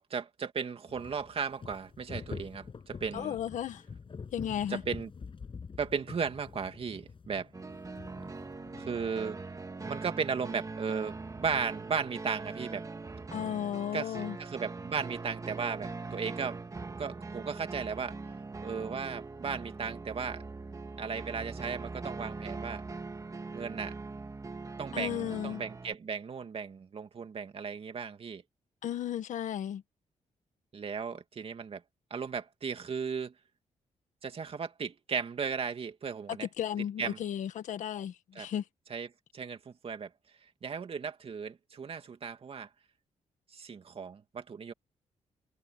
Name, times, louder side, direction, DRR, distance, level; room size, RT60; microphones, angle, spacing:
voice 1, 0.0-3.4 4.7-5.1 5.8-7.5 8.7-9.4 9.9-12.9 13.9-16.6 17.0-18.2 18.6-20.4 21.0-22.8 23.5-23.9 24.8-28.4 30.7-31.8 32.1-33.3 34.2-36.5 37.0-37.2 38.3-38.5 38.9-39.1 39.3-40.1 40.6-42.7 43.5-44.7, right 6 dB, 50° right, 2.6 m, -36 dB
sound 1, 0.9-9.1, left 5 dB, 45° left, 7.2 m, -46 dB
voice 2, 3.1-3.8 4.3-4.8 13.3-14.4 24.9-25.6 28.8-29.8 36.4-38.6, left 10 dB, 85° left, 1.6 m, -34 dB
sound 2, 7.5-25.9, right 3 dB, 25° right, 2.3 m, -42 dB
cardioid pair, 95°, 12 cm